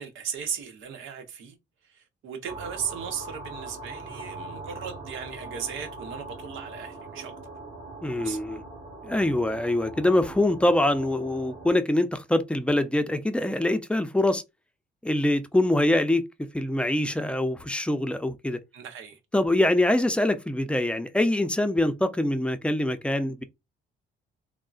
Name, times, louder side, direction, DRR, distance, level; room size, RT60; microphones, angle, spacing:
voice 1, 0.0-1.6 1.8-7.3 8.1-8.4 18.7-19.2, right 7 dB, 85° right, 0.8 m, -36 dB
sound 1, 2.5-11.7, right 2 dB, 40° right, 1.4 m, -41 dB
voice 2, 8.0-8.6 9.0-14.4 15.0-16.2 16.5-18.6 19.3-23.4, left 1 dB, 5° left, 0.5 m, -24 dB
3.6 x 2.1 x 2.4 m
cardioid pair, 90°, 20 cm